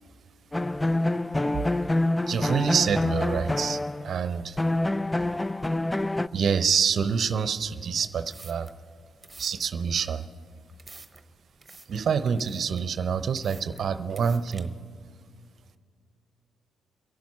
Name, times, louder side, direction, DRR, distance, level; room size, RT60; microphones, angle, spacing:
sound 1, 0.5-4.2 4.6-6.3, left 1 dB, 15° left, 0.3 m, -26 dB
voice 1, 2.3-4.7 6.3-8.7 9.4-10.3 11.9-14.7, right 6 dB, 50° right, 13 dB, 0.7 m, -27 dB
sound 2, 8.1-14.6, right 3 dB, 20° right, 1.1 m, -51 dB
28.0 x 11.5 x 4.3 m, 2.2 s
figure-of-eight pair, 40°, 0 cm